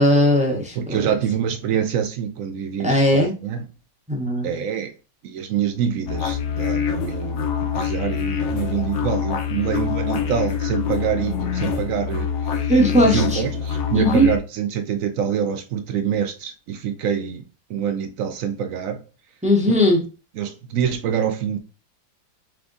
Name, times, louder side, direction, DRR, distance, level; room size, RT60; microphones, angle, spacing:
voice 1, 0.0-1.1 2.8-3.3 4.1-4.5 12.7-13.4 13.9-14.3 19.4-20.0, equal, 10° right, 0.4 m, -18 dB
voice 2, 0.8-3.7 4.4-4.9 5.2-12.7 13.0-17.4 17.7-19.0 19.7-19.8 20.4-21.6, right 8 dB, 70° right, 0.8 m, -26 dB
sound 1, 6.1-14.4, left 7 dB, 60° left, 0.8 m, -25 dB
3.5 x 3.4 x 3.8 m
omnidirectional pair, 1.8 m